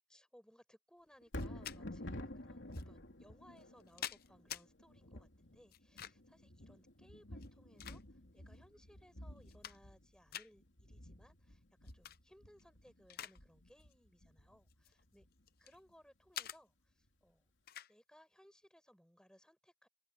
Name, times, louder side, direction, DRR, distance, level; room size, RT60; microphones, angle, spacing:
voice 1, 0.1-15.2 15.6-17.5 17.9-19.9, equal, 5° left, 4.8 m, -65 dB
Thunder, 1.2-15.4 15.9-16.0, left 1 dB, 65° left, 3.1 m, -51 dB
sound 1, 1.3-1.8 2.7-2.8 3.6-4.6 5.7-6.3 7.3-8.4 8.9-9.0 9.4-10.0 10.3-10.5 11.8-12.2 12.6-13.4 13.7-13.9 14.7-15.8 16.3-16.6 17.7-17.9, left 11 dB, 45° left, 0.6 m, -47 dB
open air
head